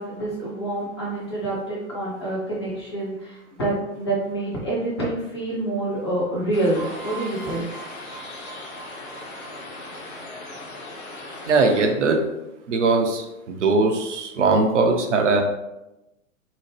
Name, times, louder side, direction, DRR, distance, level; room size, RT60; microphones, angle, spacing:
voice 1, 0.0-7.7, right 2 dB, 20° left, -5 dB, 0.4 m, -27 dB
sound 1, 6.5-11.9, left 2 dB, 50° left, 0.9 m, -38 dB
sound 2, 6.7-10.5, right 6 dB, 80° left, 1.1 m, -41 dB
voice 2, 11.5-12.2 12.7-15.4, right 3 dB, 60° right, 3 dB, 0.6 m, -20 dB
2.8 x 2.0 x 3.1 m, 0.93 s
figure-of-eight pair, 105°, 42 cm